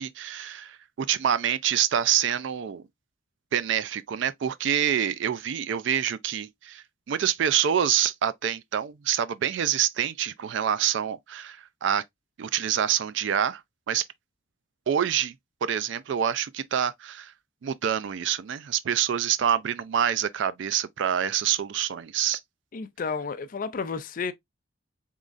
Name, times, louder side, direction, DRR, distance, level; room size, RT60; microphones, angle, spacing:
voice 1, 0.0-2.8 3.5-12.0 12.4-13.6 13.9-14.0 14.9-15.3 15.6-17.3 17.6-22.4, right 9 dB, 60° right, 0.3 m, -26 dB
voice 2, 22.7-24.3, left 5 dB, 40° left, 0.4 m, -31 dB
3.7 x 3.1 x 2.4 m
head